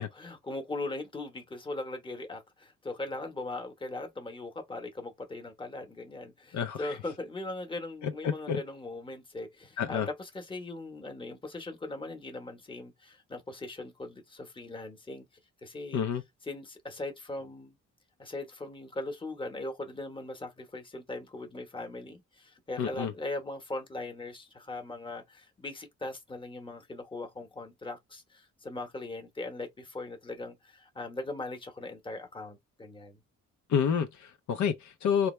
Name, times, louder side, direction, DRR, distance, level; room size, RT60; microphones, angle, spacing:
voice 1, 0.0-15.3 15.6-16.0 16.4-17.7 18.2-33.2, left 2 dB, 15° left, 1.0 m, -39 dB
voice 2, 6.5-6.9 8.0-8.6 9.8-10.1 15.9-16.2 22.8-23.1 33.7-35.3, left 7 dB, 70° left, 0.7 m, -29 dB
3.3 x 2.3 x 3.1 m
cardioid pair, 90°, 30 cm